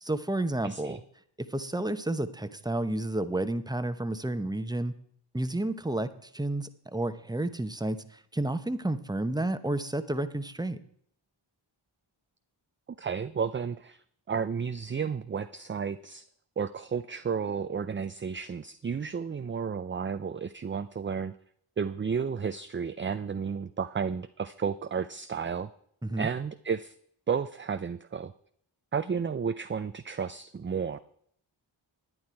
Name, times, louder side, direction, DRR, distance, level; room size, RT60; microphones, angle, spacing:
voice 1, 0.0-1.0 1.4-4.9 5.3-10.8 26.0-26.3, right 1 dB, 10° right, 11 dB, 0.9 m, -31 dB
voice 2, 0.6-1.0 13.0-16.3 16.6-21.4 21.8-25.7 26.2-26.9 27.3-28.3 28.9-31.0, right 6 dB, 25° right, 11 dB, 0.4 m, -32 dB
10.5 x 9.5 x 4.5 m, 0.65 s
cardioid pair, 40°, 49 cm